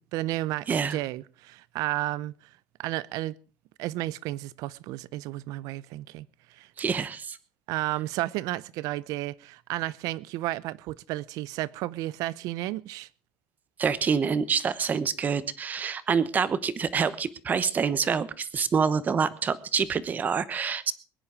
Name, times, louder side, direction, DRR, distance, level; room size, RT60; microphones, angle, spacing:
voice 1, 0.0-2.3 2.8-3.3 3.8-6.7 7.7-13.1, right 16 dB, 65° right, 0.7 m, -32 dB
voice 2, 0.7-1.0 6.8-7.4 13.8-20.9, right 6 dB, 25° right, 1.0 m, -26 dB
21.5 x 10.0 x 4.8 m
cardioid pair, 155°, 6 cm